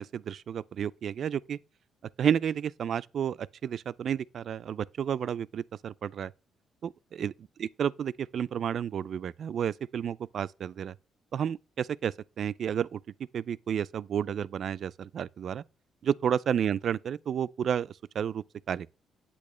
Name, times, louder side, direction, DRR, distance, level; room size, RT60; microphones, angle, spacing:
voice 1, 0.0-1.6 2.2-6.3 6.8-10.9 11.3-13.0 13.3-15.6 16.0-18.9, right 8 dB, 60° right, 0.3 m, -31 dB
8.5 x 8.1 x 3.2 m
cardioid pair, 90°, 0 cm